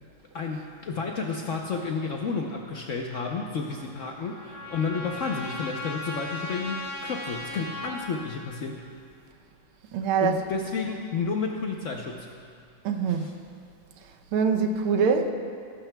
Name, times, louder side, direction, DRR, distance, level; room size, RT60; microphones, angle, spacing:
voice 1, 0.3-8.8 10.2-12.3 13.1-13.3, left 4 dB, 90° left, 1 dB, 0.6 m, -31 dB
Trumpet, 3.7-8.2, left 2 dB, 60° left, 3.4 m, -38 dB
voice 2, 9.9-10.4 12.8-13.3 14.3-15.3, right 6 dB, 85° right, 5 dB, 1.6 m, -24 dB
17.5 x 15.0 x 2.2 m, 2.3 s
omnidirectional pair, 2.3 m